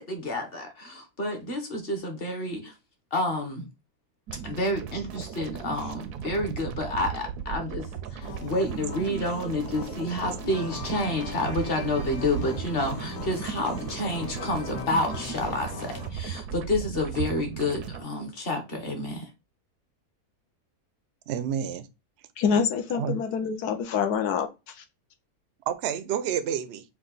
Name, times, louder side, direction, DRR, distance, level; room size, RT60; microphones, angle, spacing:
voice 1, 0.0-2.7 3.1-3.7 4.4-7.9 8.1-19.3, left 1 dB, 40° left, 1.2 m, -29 dB
sound 1, 4.3-18.0, right 8 dB, 85° right, 1.1 m, -36 dB
sound 2, 8.2-16.1, left 7 dB, 65° left, 0.7 m, -42 dB
sound 3, 10.5-16.0, left 2 dB, 20° left, 0.5 m, -43 dB
voice 2, 21.3-21.9 22.9-23.2 25.7-26.8, right 8 dB, 65° right, 0.6 m, -29 dB
voice 3, 22.4-24.5, left 6 dB, 80° left, 1.2 m, -26 dB
4.6 x 2.4 x 3.9 m
omnidirectional pair, 1.7 m